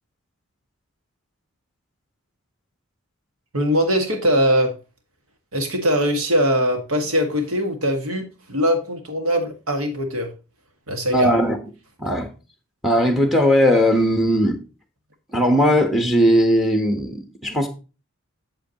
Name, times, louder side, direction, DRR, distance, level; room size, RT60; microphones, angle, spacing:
voice 1, 3.5-4.7 5.5-10.3 10.9-11.3, equal, 75° right, 1.7 m, -21 dB
voice 2, 11.1-11.6 12.0-12.3 12.8-14.6 15.3-17.7, equal, ahead, 1.0 m, -18 dB
7.9 x 7.4 x 2.9 m
head